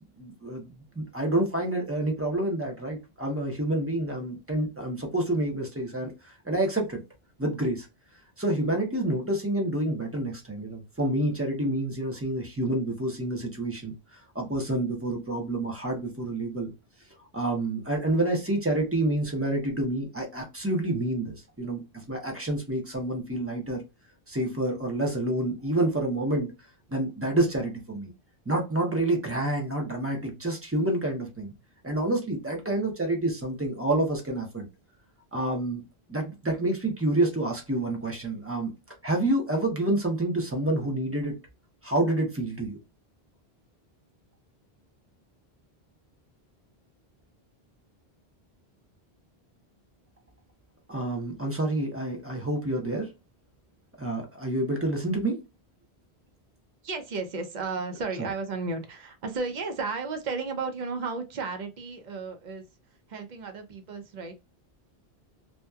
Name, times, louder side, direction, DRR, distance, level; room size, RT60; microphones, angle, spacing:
voice 1, 0.2-7.0 7.4-7.9 8.4-16.7 17.3-21.8 22.1-23.8 24.3-26.5 26.9-28.1 28.5-31.5 31.8-34.7 35.3-35.8 36.1-38.7 39.0-41.4 41.8-42.8 50.9-53.1 54.0-55.4 58.2-58.3, right 1 dB, 15° right, 0.6 m, -28 dB
voice 2, 56.8-62.6 63.1-64.3, right 4 dB, 50° right, 0.7 m, -33 dB
2.7 x 2.2 x 2.2 m
omnidirectional pair, 1.0 m